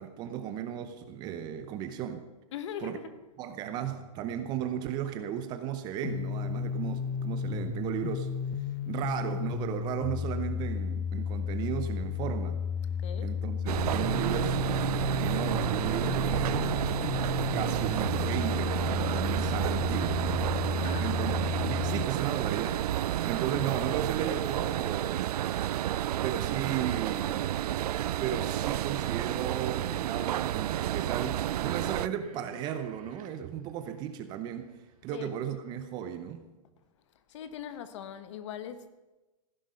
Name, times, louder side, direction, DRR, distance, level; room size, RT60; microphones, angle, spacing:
voice 1, 0.0-2.2 2.8-3.0 3.4-8.3 8.9-12.6 13.2-14.6 15.2-16.8 17.5-20.5 21.0-21.4 21.7-25.3 26.2-27.6 28.2-34.7 35.0-36.5, right 9 dB, 20° right, 0.7 m, -35 dB
voice 2, 2.5-3.1 13.0-13.4 20.7-21.2 35.1-35.3 37.3-38.9, left 8 dB, 50° left, 1.2 m, -41 dB
sound 1, 6.0-22.0, left 7 dB, 20° left, 0.4 m, -33 dB
Loud mechanical escalators, 13.7-32.1, right 12 dB, 85° right, 0.4 m, -30 dB
sound 2, 28.2-35.7, right 6 dB, 65° right, 2.3 m, -56 dB
16.0 x 10.0 x 5.6 m
hypercardioid pair, 165°, 19 cm